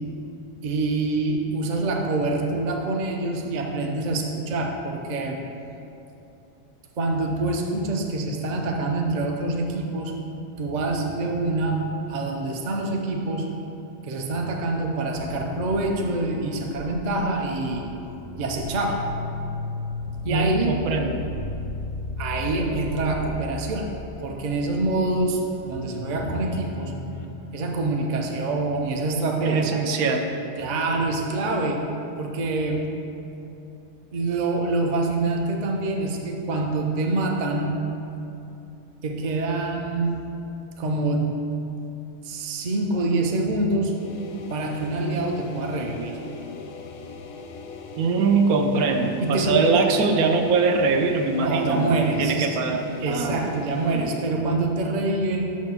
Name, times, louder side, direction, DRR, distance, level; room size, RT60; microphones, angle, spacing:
voice 1, 0.6-5.4 7.0-10.1 10.6-13.5 14.0-17.8 18.4-19.1 20.2-20.8 22.2-23.9 24.2-26.9 27.5-29.8 30.6-31.9 32.2-32.9 34.1-37.8 39.0-40.3 40.8-41.4 42.2-44.0 44.5-46.2 49.2-49.7 51.4-52.6 53.0-55.5, right 2 dB, 50° right, 2 dB, 0.5 m, -26 dB
sound 1, 15.2-27.4, left 3 dB, 55° left, 0.6 m, -35 dB
voice 2, 20.3-21.2 29.4-30.3 48.0-53.5 53.9-54.2, right 4 dB, 80° right, 5 dB, 1.1 m, -22 dB
sound 2, 43.8-54.3, left 4 dB, 85° left, 1.1 m, -40 dB
6.3 x 4.6 x 5.7 m, 2.9 s
omnidirectional pair, 1.6 m